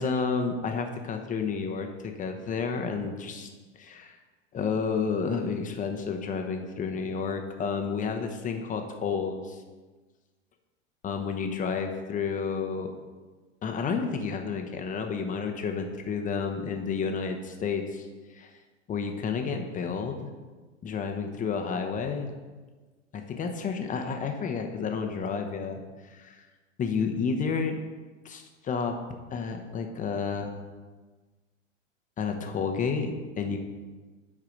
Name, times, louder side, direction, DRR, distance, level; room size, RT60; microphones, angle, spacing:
voice 1, 0.0-3.5 3.8-4.2 4.5-9.6 11.0-12.9 13.6-18.5 18.9-20.3 20.8-22.3 23.1-26.4 26.8-27.8 28.2-29.0 29.3-30.6 32.2-33.6, left 5 dB, 20° left, 4 dB, 0.9 m, -31 dB
7.6 x 4.8 x 5.1 m, 1.3 s
hypercardioid pair, 100°, 37 cm